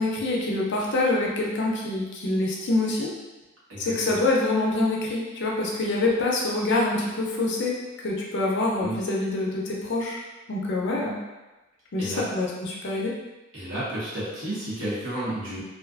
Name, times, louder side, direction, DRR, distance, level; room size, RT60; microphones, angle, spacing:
voice 1, 0.0-3.1 3.8-10.2 10.5-11.2 11.9-13.1, left 2 dB, 55° left, -2 dB, 0.5 m, -26 dB
voice 2, 3.7-4.2 8.8-9.0 12.0-12.2 13.5-15.6, right 1 dB, 65° right, -9 dB, 1.1 m, -32 dB
2.4 x 2.4 x 2.3 m, 1.1 s
head